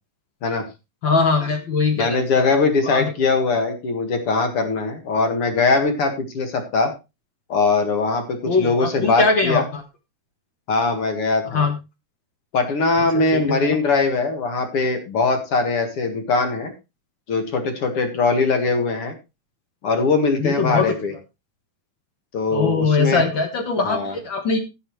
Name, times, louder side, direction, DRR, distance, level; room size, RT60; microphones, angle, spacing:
voice 1, 1.0-2.5 2.9-3.1 8.5-9.8 11.5-11.8 13.1-13.6 20.4-20.8 22.5-24.6, left 4 dB, 65° left, 5 dB, 1.2 m, -21 dB
voice 2, 1.9-6.9 7.5-9.6 10.7-11.7 12.5-16.7 17.3-19.1 19.8-21.1 22.3-23.2 23.8-24.2, left 3 dB, 50° left, 6 dB, 2.1 m, -21 dB
17.0 x 7.0 x 3.1 m, 0.26 s
omnidirectional pair, 4.3 m